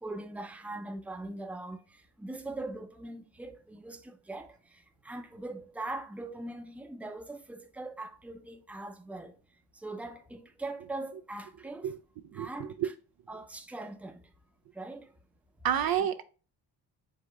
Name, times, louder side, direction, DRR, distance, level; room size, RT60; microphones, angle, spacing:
voice 1, 0.0-9.3 9.7-11.9 12.3-12.9 13.3-14.3 14.7-15.1 16.0-16.1, right 2 dB, 5° right, 0.6 m, -41 dB
voice 2, 12.3-12.9 15.6-16.2, right 9 dB, 55° right, 0.5 m, -29 dB
4.9 x 3.5 x 2.3 m
cardioid pair, 65°, 43 cm